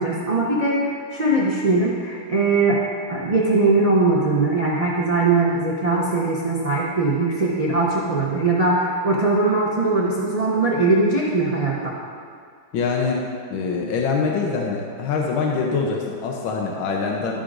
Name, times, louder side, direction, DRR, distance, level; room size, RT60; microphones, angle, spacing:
voice 1, 0.0-2.8 3.1-12.0, right 3 dB, 55° right, -4 dB, 0.4 m, -20 dB
voice 2, 12.7-13.2 13.5-17.4, left 4 dB, 80° left, -1 dB, 1.6 m, -24 dB
11.5 x 9.1 x 2.6 m, 2.2 s
omnidirectional pair, 2.1 m